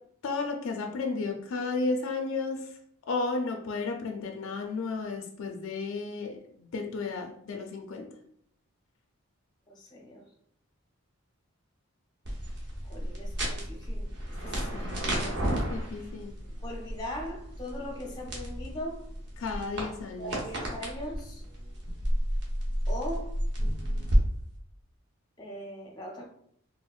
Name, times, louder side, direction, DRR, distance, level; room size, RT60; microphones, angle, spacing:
voice 1, 0.2-2.8 3.1-8.1 14.7-16.3 19.4-20.4, left 3 dB, 65° left, 0.4 m, -33 dB
voice 2, 9.7-10.3 12.8-15.8 16.6-19.0 20.2-21.4 22.9-23.4 25.4-26.3, equal, 20° left, 0.6 m, -40 dB
sound 1, 12.2-24.2, equal, 50° right, 0.8 m, -32 dB
4.3 x 2.1 x 2.3 m
head